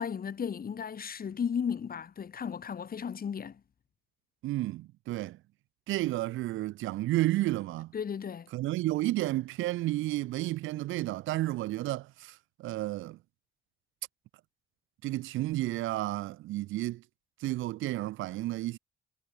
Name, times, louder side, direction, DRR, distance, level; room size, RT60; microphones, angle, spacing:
voice 1, 0.0-3.6 7.9-8.5, left 7 dB, 45° left, 3.5 m, -34 dB
voice 2, 4.4-5.4 5.9-7.9 8.5-13.2 15.0-17.0 17.4-18.8, right 16 dB, 85° right, 0.8 m, -31 dB
cardioid pair, 90°, 20 cm